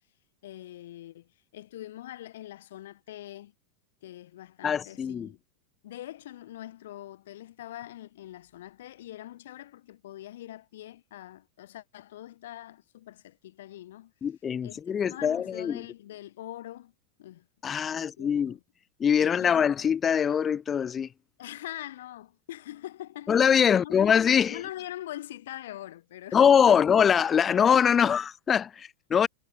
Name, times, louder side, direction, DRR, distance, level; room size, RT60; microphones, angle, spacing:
voice 1, 0.4-3.5 4.0-5.4 5.8-14.1 14.6-16.9 17.2-18.6 19.2-19.9 21.4-23.4 23.7-24.1 24.5-26.8, left 13 dB, 55° left, 7.9 m, -43 dB
voice 2, 4.6-5.3 14.2-15.8 17.6-18.6 19.0-21.1 23.3-24.6 26.3-29.3, left 7 dB, 20° left, 1.2 m, -23 dB
figure-of-eight pair, 90°, 0 cm